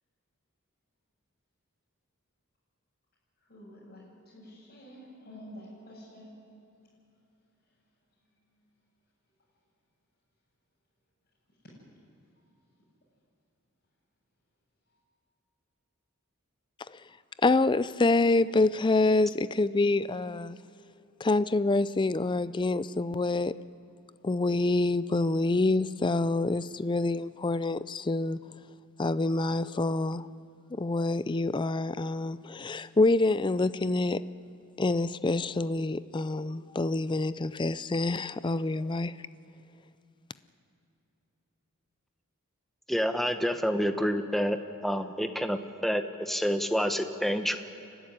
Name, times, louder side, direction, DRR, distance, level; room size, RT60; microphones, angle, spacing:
voice 1, 3.5-4.1 4.3-6.3, equal, 45° left, 6.8 m, -48 dB
voice 2, 17.4-20.6 21.2-23.5 24.2-28.4 29.0-30.3 30.8-34.2 34.8-39.1, left 2 dB, 20° left, 0.4 m, -26 dB
voice 3, 42.9-44.6 44.8-47.6, equal, ahead, 0.9 m, -28 dB
29.5 x 12.0 x 9.9 m
head